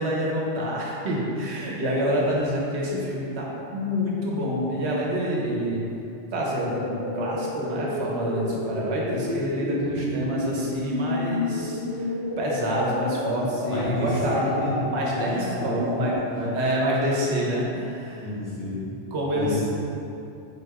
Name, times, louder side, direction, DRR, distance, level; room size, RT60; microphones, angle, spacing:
voice 1, 0.0-5.8 6.3-12.1 12.4-14.5 14.9-16.1 16.5-18.3 19.1-19.7, equal, 75° right, -3 dB, 1.1 m, -27 dB
sound 1, 6.7-16.2, left 1 dB, 75° left, 1.9 m, -31 dB
voice 2, 9.8-10.1 13.7-14.7 15.2-15.9 16.3-16.5 18.2-18.8 19.3-19.7, equal, 15° left, -11 dB, 1.3 m, -31 dB
4.1 x 3.2 x 3.4 m, 2.8 s
omnidirectional pair, 1.1 m